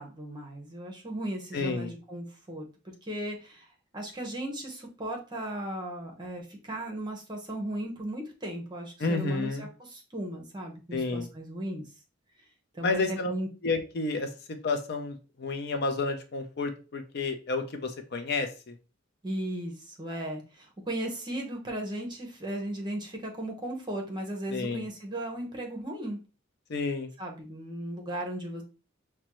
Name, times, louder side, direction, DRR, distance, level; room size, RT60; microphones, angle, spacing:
voice 1, 0.0-2.7 3.0-3.7 3.9-11.8 12.7-13.5 19.2-26.2 27.2-28.6, right 1 dB, 25° right, 2 dB, 0.8 m, -36 dB
voice 2, 1.5-1.9 9.0-9.7 10.9-11.3 12.8-13.3 13.6-14.3 14.6-18.7 24.5-24.9 26.7-27.1, left 3 dB, 60° left, 6 dB, 0.5 m, -30 dB
5.1 x 2.2 x 2.9 m, 0.32 s
head